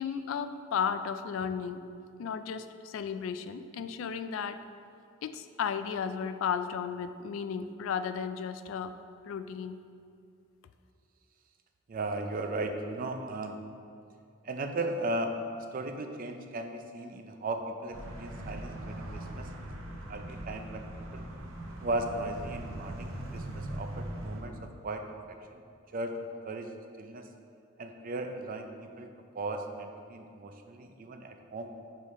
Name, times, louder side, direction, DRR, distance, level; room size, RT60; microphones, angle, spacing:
voice 1, 0.0-1.8 2.2-4.6 5.2-8.9 9.2-9.8, left 7 dB, 70° left, 12 dB, 0.3 m, -34 dB
voice 2, 11.9-13.6 14.4-20.9 21.1-21.2 21.8-24.6 24.8-25.0 25.5-25.6 25.9-26.1 26.4-26.7 27.0-27.3 27.8-29.1 29.4-31.7, right 2 dB, 45° right, 5 dB, 0.4 m, -36 dB
sound 1, 17.9-24.4, right 1 dB, 80° right, 0.7 m, -40 dB
5.5 x 4.9 x 4.2 m, 2.4 s
head